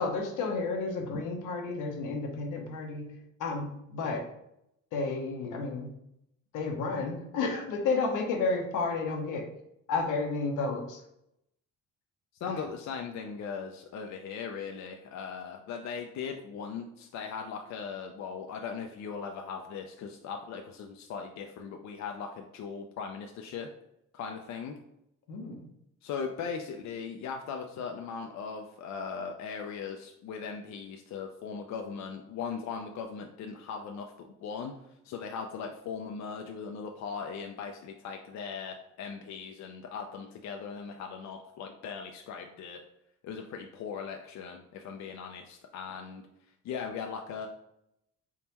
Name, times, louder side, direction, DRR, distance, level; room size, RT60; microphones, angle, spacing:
voice 1, 0.0-3.1 3.4-4.3 4.9-5.9 6.5-9.5 9.9-11.0 12.5-12.6 25.3-25.7, left 3 dB, 85° left, 3 dB, 0.9 m, -31 dB
voice 2, 12.4-23.7 24.1-24.7 26.0-34.7 35.0-42.8 43.2-46.2 46.6-47.5, left 6 dB, 65° left, 3 dB, 0.5 m, -39 dB
4.0 x 3.6 x 2.9 m, 0.80 s
cardioid pair, 90°, 30 cm